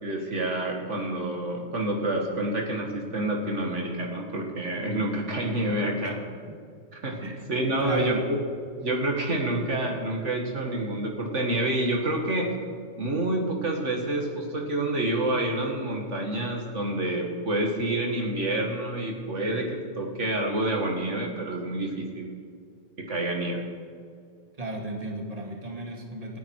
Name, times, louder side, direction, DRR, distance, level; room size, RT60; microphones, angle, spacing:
voice 1, 0.0-6.2 7.0-7.2 7.5-8.4 8.8-12.5 13.0-22.3 23.0-23.7, right 1 dB, 70° right, 1 dB, 2.4 m, -28 dB
voice 2, 7.8-8.3 24.6-26.4, right 1 dB, 30° right, 0 dB, 2.3 m, -34 dB
28.0 x 9.9 x 4.9 m, 2.2 s
omnidirectional pair, 1.3 m